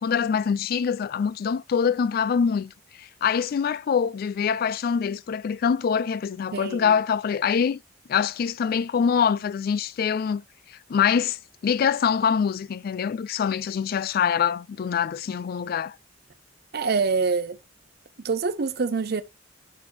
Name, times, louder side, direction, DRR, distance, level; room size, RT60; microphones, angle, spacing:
voice 1, 0.0-2.7 3.0-7.8 8.1-10.4 10.9-11.4 11.6-16.0, left 7 dB, 50° left, 0.3 m, -24 dB
voice 2, 6.5-6.9 16.7-17.6 18.2-19.2, right 4 dB, 55° right, 0.5 m, -25 dB
6.0 x 6.0 x 2.7 m
head